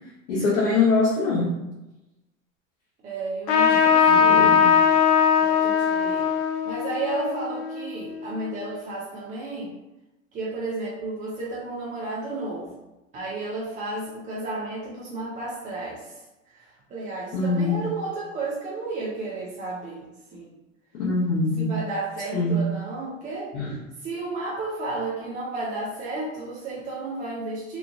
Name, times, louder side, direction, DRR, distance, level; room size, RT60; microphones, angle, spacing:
voice 1, 0.3-1.6 4.1-4.7 17.3-17.9 20.9-21.7 22.3-22.6 23.5-23.7, left 3 dB, 80° left, -7 dB, 0.9 m, -23 dB
voice 2, 3.0-4.9 5.4-6.3 6.6-9.7 10.3-12.8 13.1-16.2 16.5-20.5 21.6-23.5 24.0-27.8, right 2 dB, 20° right, -5 dB, 0.4 m, -32 dB
Trumpet, 3.5-8.5, left 7 dB, 40° left, 0.5 m, -20 dB
2.9 x 2.3 x 2.3 m, 0.98 s
hypercardioid pair, 95°, 40 cm